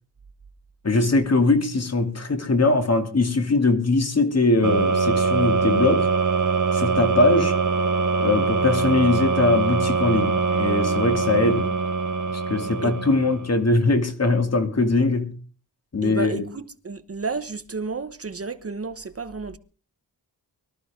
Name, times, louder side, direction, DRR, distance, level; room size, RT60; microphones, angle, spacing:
voice 1, 0.8-6.1 6.7-7.6 8.2-11.7 12.5-15.3 15.9-16.4, left 3 dB, 40° left, 2.6 m, -21 dB
sound 1, 4.6-13.5, right 4 dB, 55° right, 1.3 m, -23 dB
voice 2, 16.0-19.6, right 4 dB, 40° right, 1.0 m, -31 dB
23.5 x 13.0 x 3.7 m
wide cardioid pair, 95°, 38 cm